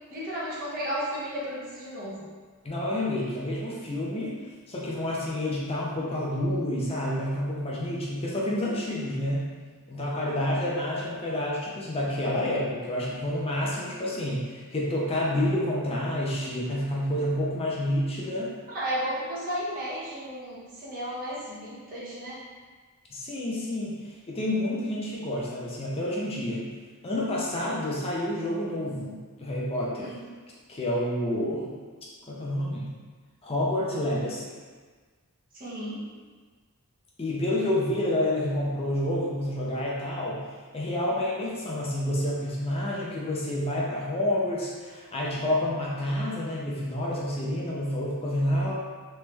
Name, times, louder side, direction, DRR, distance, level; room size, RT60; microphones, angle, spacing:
voice 1, 0.1-2.3 10.0-10.4 18.7-22.4 30.0-30.3 35.5-36.1, equal, 40° right, -7 dB, 1.0 m, -34 dB
voice 2, 2.6-4.4 4.7-9.5 9.9-18.5 23.1-26.7 27.0-30.1 30.7-31.7 32.3-32.9 33.4-34.6 37.2-40.4 40.7-48.7, left 1 dB, 25° left, -5 dB, 0.5 m, -29 dB
3.3 x 3.1 x 3.3 m, 1.5 s
head